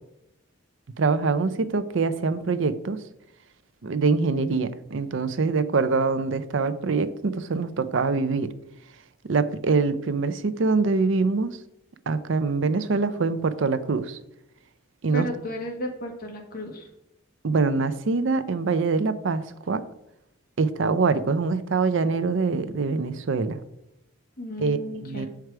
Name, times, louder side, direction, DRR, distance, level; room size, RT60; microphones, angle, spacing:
voice 1, 1.0-3.0 3.8-8.5 9.2-11.6 12.1-14.2 15.0-15.3 17.4-19.8 20.6-23.6 24.6-25.3, right 4 dB, 65° right, 13 dB, 0.5 m, -24 dB
voice 2, 15.1-16.9 24.4-25.3, left 1 dB, 45° left, 0 dB, 1.5 m, -34 dB
7.7 x 4.7 x 4.7 m, 0.80 s
head